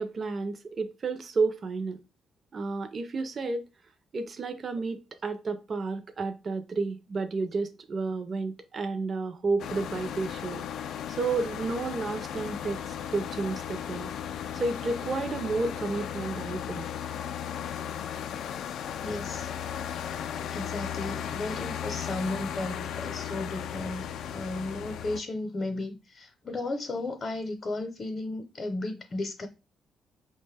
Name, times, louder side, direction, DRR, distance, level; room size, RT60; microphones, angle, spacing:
voice 1, 0.0-2.0 2.5-3.6 4.1-10.6 11.1-14.1 14.5-16.8, right 3 dB, 45° right, 0.5 m, -31 dB
sound 1, 9.6-25.2, left 9 dB, 75° left, 0.3 m, -36 dB
voice 2, 19.0-19.5 20.5-29.5, left 2 dB, 35° left, 0.7 m, -34 dB
5.1 x 2.1 x 3.3 m
cardioid pair, 90°, 0 cm